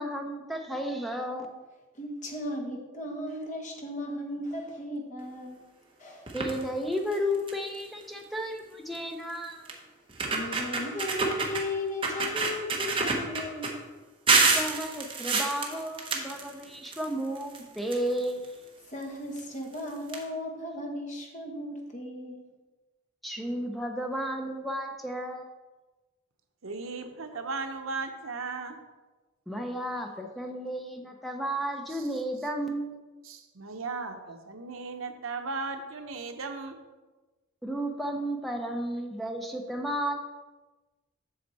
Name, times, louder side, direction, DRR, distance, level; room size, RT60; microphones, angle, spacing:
voice 1, 0.0-1.6 6.3-9.8 14.5-18.5 23.2-25.5 29.5-33.0 37.6-40.3, equal, ahead, 2 dB, 0.7 m, -33 dB
voice 2, 1.9-5.6 6.0-6.3 10.3-13.8 18.8-22.5, left 1 dB, 35° left, 1 dB, 1.3 m, -36 dB
sound 1, 6.3-6.6 7.1-7.2 7.5-7.8 8.9-9.0 9.7-9.8 10.1-11.6 12.0-13.7 14.3-17.0 17.3-18.5 19.4-19.5 19.7-19.8 20.1-20.2, right 3 dB, 25° right, 0.9 m, -27 dB
voice 3, 26.6-28.8 31.9-32.1 33.2-36.8, right 4 dB, 80° right, 6 dB, 0.8 m, -36 dB
7.9 x 6.5 x 4.1 m, 1.2 s
head